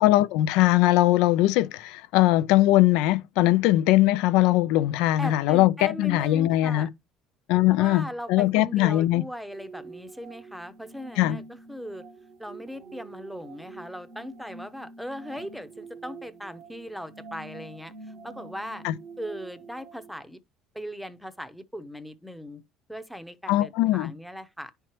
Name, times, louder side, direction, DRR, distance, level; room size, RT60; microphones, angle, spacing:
voice 1, 0.0-6.9 7.5-9.2 11.2-11.4 18.8-18.9 23.5-24.1, left 16 dB, 80° left, 0.5 m, -21 dB
voice 2, 5.2-6.9 7.7-12.1 12.4-18.8 19.2-20.4 20.7-22.6 22.9-24.7, equal, ahead, 0.7 m, -39 dB
sound 1, 9.5-20.2, right 3 dB, 45° right, 0.7 m, -46 dB
10.0 x 4.5 x 3.1 m
cardioid pair, 130°, 0 cm